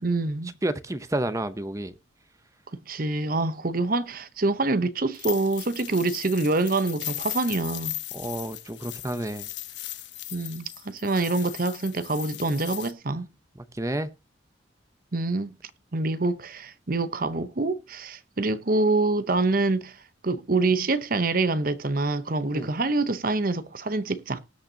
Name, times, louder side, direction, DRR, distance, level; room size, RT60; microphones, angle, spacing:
voice 1, 0.0-0.5 2.7-7.9 10.3-13.3 15.1-15.5 15.9-20.0 20.2-24.4, right 3 dB, 45° right, 0.8 m, -26 dB
voice 2, 0.6-1.9 8.1-9.5 13.7-14.1 22.5-22.7, right 1 dB, 15° right, 0.7 m, -30 dB
sound 1, 5.1-12.9, left 15 dB, 65° left, 1.1 m, -38 dB
19.0 x 6.5 x 2.8 m
head